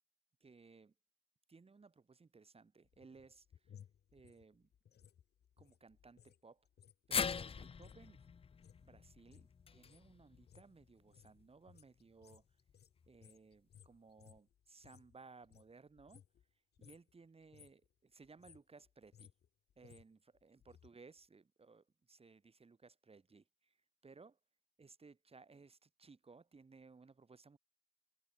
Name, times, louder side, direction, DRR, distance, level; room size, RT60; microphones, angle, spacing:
voice 1, 0.4-0.9 1.5-3.8 4.1-4.7 5.6-6.7 7.1-8.2 8.8-12.4 13.1-16.2 16.8-19.3 19.8-23.8 24.0-24.4 24.8-27.6, right 4 dB, 30° right, 5.6 m, -61 dB
sound 1, 2.8-6.4 6.7-15.2 15.4-16.5 16.8-17.1 17.4-17.9 18.2-20.9 21.2-21.3, left 9 dB, 55° left, 1.8 m, -63 dB
sound 2, 7.1-11.4 11.7-11.8 13.0-13.1, left 6 dB, 30° left, 0.5 m, -42 dB
cardioid pair, 90°, 20 cm